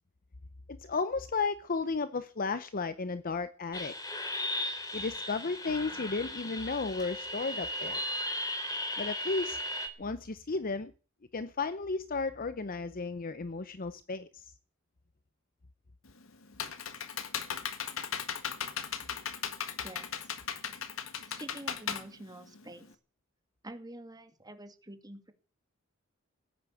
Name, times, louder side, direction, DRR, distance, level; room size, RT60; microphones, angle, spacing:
voice 1, 0.7-3.9 4.9-8.0 9.0-9.6 10.0-10.9 11.3-14.5, left 4 dB, 45° left, 0.8 m, -34 dB
sound 1, 3.7-9.9, left 1 dB, 20° left, 3.1 m, -36 dB
Computer keyboard, 16.0-22.9, left 8 dB, 80° left, 1.7 m, -37 dB
voice 2, 21.4-22.9 23.6-25.3, right 1 dB, 20° right, 2.3 m, -46 dB
16.5 x 9.5 x 8.5 m
head